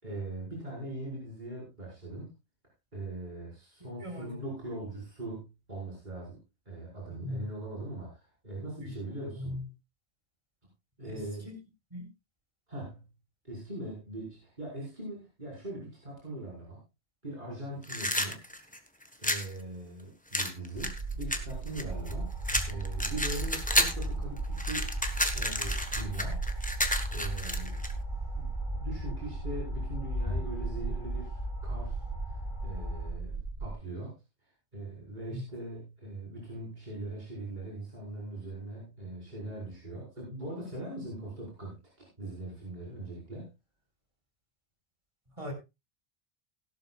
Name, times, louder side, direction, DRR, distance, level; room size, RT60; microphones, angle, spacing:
voice 1, 0.0-2.3 2.9-6.4 6.7-9.6 11.0-11.5 12.7-13.1 13.4-16.8 17.2-18.4 19.2-25.0 25.3-26.4 27.1-27.8 28.4-43.5, right 1 dB, 45° right, -5 dB, 5.3 m, -41 dB
voice 2, 4.0-4.4 7.1-7.5 8.8-9.7 11.1-11.6 11.9-12.1 35.2-35.4 45.4-45.5, left 2 dB, 30° right, 3 dB, 4.3 m, -40 dB
sound 1, 17.8-19.5 20.3-22.1 22.5-24.1 24.4-27.9, left 1 dB, 10° left, 1.2 m, -31 dB
sound 2, 20.7-33.7, right 4 dB, 75° right, 1.6 m, -37 dB
sound 3, 21.9-33.1, left 1 dB, 25° left, 4.9 m, -38 dB
17.0 x 12.0 x 2.4 m, 0.24 s
omnidirectional pair, 1.1 m